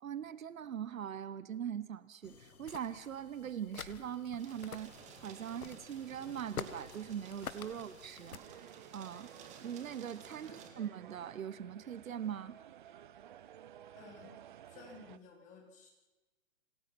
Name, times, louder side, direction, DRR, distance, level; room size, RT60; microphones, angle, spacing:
voice 1, 0.0-4.9 5.2-8.4 8.9-9.3 9.6-12.5, right 9 dB, 70° right, 16 dB, 1.2 m, -41 dB
sound 1, 2.2-8.4, left 6 dB, 90° left, 1.8 m, -48 dB
sound 2, 4.4-10.7, right 6 dB, 15° right, 2.1 m, -55 dB
sound 3, 8.3-15.2, right 10 dB, 35° right, 0.7 m, -55 dB
voice 2, 14.0-14.4 14.6-15.9, left 4 dB, 15° left, 1 dB, 4.1 m, -55 dB
27.5 x 18.0 x 6.0 m, 1.2 s
hypercardioid pair, 155°, 42 cm